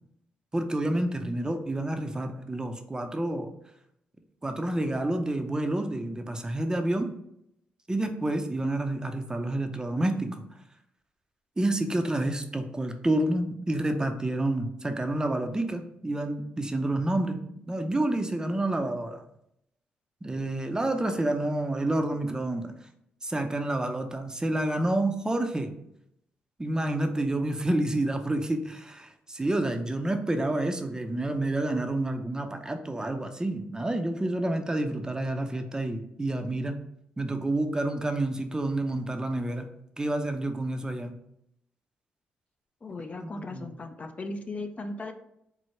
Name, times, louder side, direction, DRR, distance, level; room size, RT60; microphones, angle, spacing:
voice 1, 0.5-3.5 4.4-7.1 7.9-10.4 11.6-17.4 17.7-19.2 20.2-22.7 23.2-25.7 26.6-36.8 37.2-39.7 40.0-41.1 43.2-43.7, right 1 dB, 20° right, 6 dB, 0.5 m, -29 dB
voice 2, 42.8-45.1, left 2 dB, 35° left, 6 dB, 0.5 m, -37 dB
4.6 x 2.0 x 4.3 m, 0.78 s
cardioid pair, 65°, 4 cm